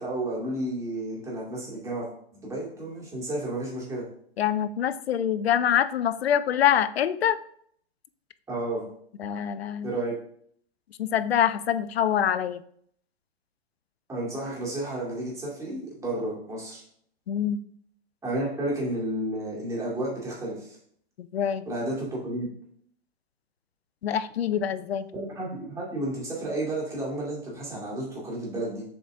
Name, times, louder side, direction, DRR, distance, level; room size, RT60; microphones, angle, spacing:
voice 1, 0.0-4.0 8.5-8.8 9.8-10.1 14.1-16.8 18.2-20.8 21.7-22.5 25.1-28.8, right 1 dB, 10° right, -5 dB, 2.2 m, -32 dB
voice 2, 4.4-7.4 9.2-9.9 11.0-12.6 17.3-17.6 21.3-21.6 24.0-25.1, left 9 dB, 70° left, 14 dB, 0.5 m, -25 dB
6.9 x 4.0 x 3.5 m, 0.64 s
hypercardioid pair, 125°, 32 cm